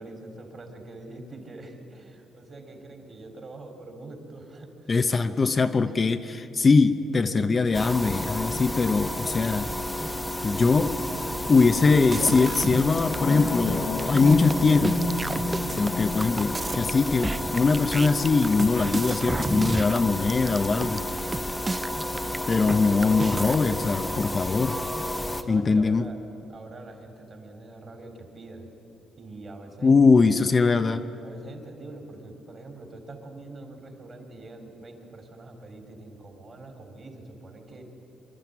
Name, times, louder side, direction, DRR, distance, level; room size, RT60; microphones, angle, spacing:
voice 1, 0.0-4.9 10.6-10.7 25.1-26.2 26.5-28.7 29.2-30.1 30.5-30.7 31.2-37.8, right 2 dB, 40° right, 4 dB, 4.1 m, -44 dB
voice 2, 4.9-9.7 10.4-10.9 11.5-15.0 15.8-21.0 22.5-24.8 25.5-26.0 29.8-31.0, left 4 dB, 35° left, 8 dB, 0.8 m, -22 dB
sound 1, 7.7-25.4, left 1 dB, 10° left, 1.3 m, -31 dB
sound 2, 12.0-13.2 13.5-13.6 13.8-22.8 23.0-23.6, right 3 dB, 25° right, 0.4 m, -32 dB
sound 3, 12.9-17.9 18.4-18.5, left 2 dB, 55° left, 1.5 m, -32 dB
25.0 x 12.5 x 9.7 m, 2.9 s
cardioid pair, 90°, 0 cm